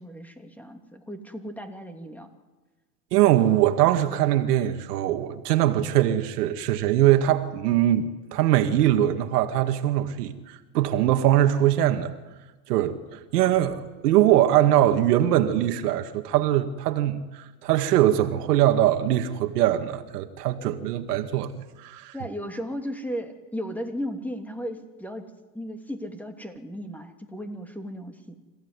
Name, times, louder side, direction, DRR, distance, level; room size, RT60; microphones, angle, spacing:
voice 1, 0.0-2.3 22.1-25.2 25.5-28.4, equal, 5° left, 2.9 m, -35 dB
voice 2, 3.1-12.1 12.7-21.5 21.8-22.1, right 12 dB, 80° right, 2.1 m, -22 dB
26.5 x 17.0 x 9.9 m
supercardioid pair, 115°, 46 cm